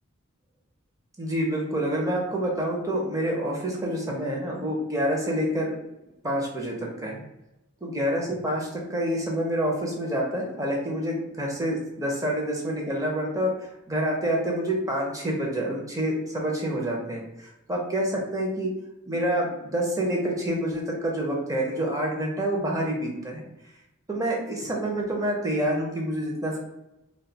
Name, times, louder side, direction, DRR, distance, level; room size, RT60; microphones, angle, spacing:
voice 1, 1.2-5.7 6.2-7.2 7.8-18.7 19.1-23.4 24.1-26.6, right 1 dB, 15° right, -2 dB, 0.6 m, -27 dB
2.3 x 2.3 x 3.9 m, 0.93 s
head